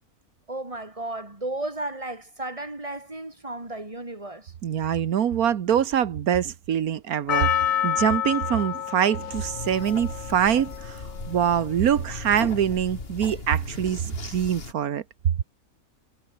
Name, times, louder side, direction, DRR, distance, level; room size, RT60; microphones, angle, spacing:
voice 1, 0.5-4.5, right 2 dB, 20° right, 3.6 m, -34 dB
voice 2, 4.6-15.0, right 9 dB, 85° right, 1.5 m, -24 dB
Percussion, 7.3-11.6 12.3-12.4, left 10 dB, 70° left, 1.2 m, -28 dB
sound 1, 9.3-14.7, left 3 dB, 40° left, 2.5 m, -38 dB
omnidirectional pair, 1.5 m